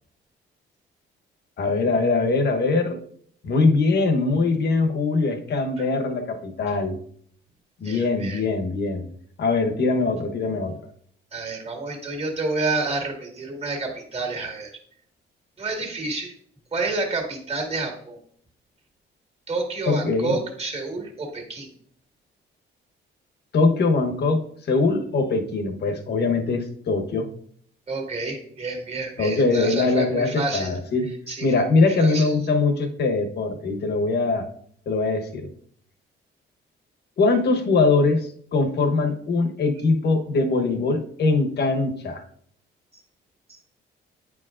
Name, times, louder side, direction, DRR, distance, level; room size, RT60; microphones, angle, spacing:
voice 1, 1.6-3.0 3.4-7.0 7.8-9.1 9.4-10.7 19.9-20.4 23.5-27.3 29.2-31.1 31.4-34.5 34.9-35.5 37.2-42.2, left 3 dB, 55° left, 6 dB, 1.1 m, -22 dB
voice 2, 7.8-8.4 11.3-14.7 15.6-16.3 16.7-18.2 19.5-21.7 27.9-30.7 31.3-32.4, right 3 dB, 30° right, 2 dB, 1.9 m, -29 dB
9.0 x 4.8 x 2.5 m, 0.62 s
cardioid pair, 90°, 20 cm